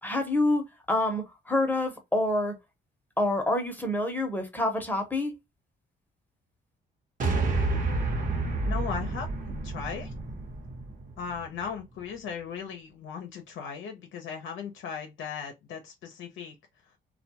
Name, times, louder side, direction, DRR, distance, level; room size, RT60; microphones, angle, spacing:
voice 1, 0.0-2.6 3.2-5.3, left 1 dB, 10° left, 0.8 m, -27 dB
sound 1, 7.2-11.6, right 3 dB, 40° right, 1.0 m, -30 dB
voice 2, 8.6-9.3 9.6-10.1 11.2-16.6, left 6 dB, 75° left, 0.6 m, -37 dB
2.3 x 2.2 x 2.8 m
cardioid pair, 90°, 20 cm